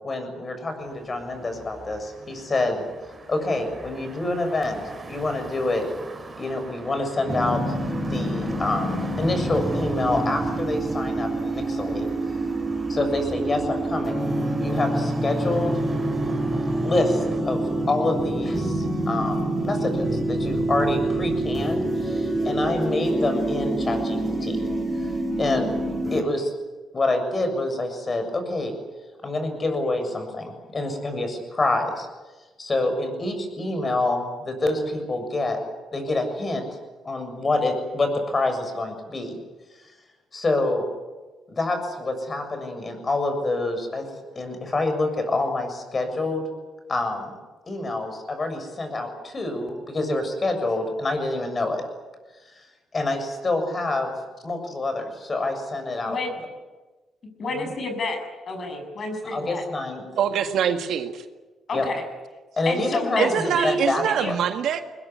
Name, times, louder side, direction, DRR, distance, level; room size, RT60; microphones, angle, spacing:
voice 1, 0.0-2.8 3.3-4.8 5.1-5.8 6.4-7.6 8.0-12.1 12.9-14.3 14.6-15.8 16.8-24.6 25.0-25.1 25.4-25.7 26.1-26.5 26.9-28.7 29.2-32.1 32.6-35.6 35.9-36.6 37.0-39.4 40.3-40.9 41.5-44.0 44.4-46.5 46.9-47.3 47.7-51.8 52.9-54.1 54.4-56.2 57.5-57.7 59.3-60.0 61.7-61.9 62.5-64.4, left 2 dB, 30° left, 7 dB, 7.2 m, -27 dB
sound 1, 0.8-17.4, right 3 dB, 25° right, 5.6 m, -42 dB
sound 2, 7.3-26.2, right 1 dB, ahead, 6.2 m, -26 dB
voice 2, 57.4-58.2 58.5-59.6 61.7-62.0 62.7-64.3, left 2 dB, 50° left, 5 dB, 7.3 m, -30 dB
voice 3, 60.2-61.2 63.2-64.8, right 8 dB, 75° right, 7 dB, 2.0 m, -24 dB
21.5 x 21.0 x 9.9 m, 1.2 s
cardioid pair, 90°, 0 cm